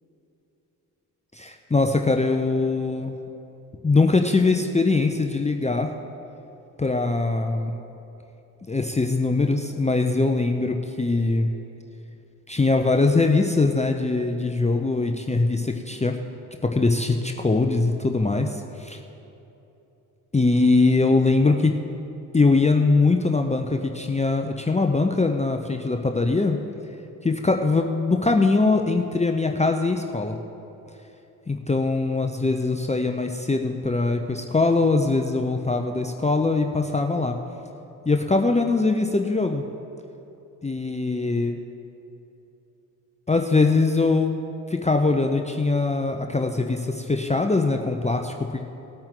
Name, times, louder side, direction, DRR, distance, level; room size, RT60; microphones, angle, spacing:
voice 1, 1.3-3.1 3.8-5.9 6.8-7.7 8.7-11.5 12.5-16.2 16.6-19.0 20.3-21.8 22.3-26.6 27.2-30.4 31.5-37.4 38.1-39.6 40.6-41.6 43.3-44.3 44.7-48.6, left 3 dB, 15° left, 4 dB, 0.8 m, -22 dB
19.5 x 8.8 x 3.9 m, 3.0 s
hypercardioid pair, 45°, 47 cm